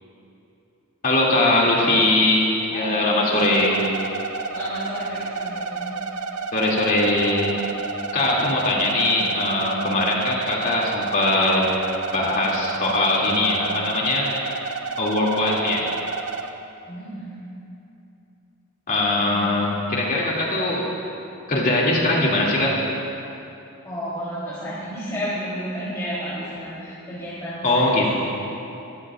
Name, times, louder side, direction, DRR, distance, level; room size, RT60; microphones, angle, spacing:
voice 1, 1.0-2.5 2.7-3.9 6.5-7.5 8.1-11.7 12.1-14.3 15.0-15.9 18.9-20.9 21.5-22.8 27.6-28.1, left 2 dB, 40° left, -4 dB, 2.7 m, -21 dB
voice 2, 2.7-3.3 4.5-6.0 16.9-17.3 19.2-19.4 23.8-28.0, equal, 15° left, -12 dB, 3.7 m, -32 dB
sound 1, 3.4-16.5, right 4 dB, 75° right, 0.8 m, -31 dB
25.0 x 14.0 x 2.6 m, 2.8 s
head